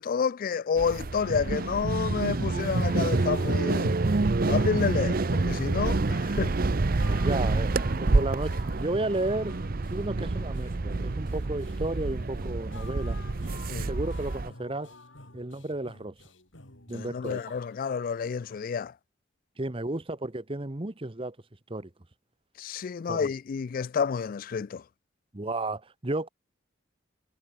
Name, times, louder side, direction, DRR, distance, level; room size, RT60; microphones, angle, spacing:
voice 1, 0.0-3.9 4.4-6.6 13.7-13.9 16.9-18.9 22.6-24.8, left 6 dB, 45° left, 0.3 m, -29 dB
sound 1, 0.8-14.5, right 3 dB, 50° right, 0.7 m, -27 dB
sound 2, 2.8-18.6, left 2 dB, 75° left, 4.7 m, -50 dB
voice 2, 7.0-9.6 9.9-13.2 13.8-14.9 15.3-16.2 16.9-17.6 19.6-21.4 21.7-21.9 23.1-23.3 25.3-26.3, right 2 dB, 30° right, 1.1 m, -33 dB
head